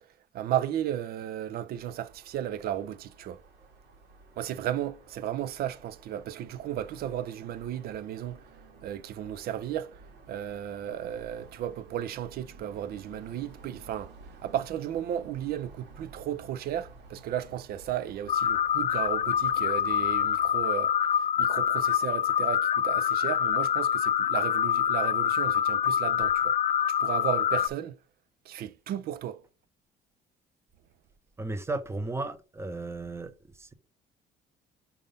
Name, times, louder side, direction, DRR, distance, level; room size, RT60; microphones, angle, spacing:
voice 1, 0.3-3.4 4.4-8.5 8.8-10.0 10.3-14.1 14.4-26.6 27.0-28.0 28.5-29.4, right 11 dB, 65° right, 0.6 m, -34 dB
sound 1, 1.7-20.6, right 3 dB, 85° right, 1.7 m, -53 dB
sound 2, 18.3-27.7, left 9 dB, 40° left, 0.4 m, -26 dB
voice 2, 31.4-33.3, right 2 dB, 15° right, 0.7 m, -34 dB
5.4 x 3.6 x 5.4 m
cardioid pair, 110°, 17 cm